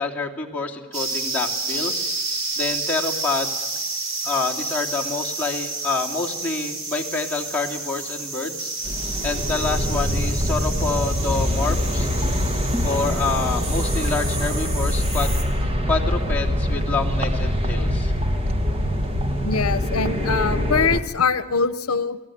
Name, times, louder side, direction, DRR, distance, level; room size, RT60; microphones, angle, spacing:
voice 1, 0.0-2.1 2.6-3.7 4.2-8.7 9.0-12.1 12.8-15.3 15.9-18.1, left 4 dB, 10° left, -4 dB, 2.7 m, -27 dB
sound 1, 0.9-15.4, right 3 dB, 60° right, 4.8 m, -30 dB
sound 2, 8.9-21.0, equal, 25° right, 1.5 m, -23 dB
voice 2, 19.4-22.2, left 5 dB, 80° left, 13 dB, 0.8 m, -23 dB
30.0 x 18.5 x 9.4 m, 1.2 s
head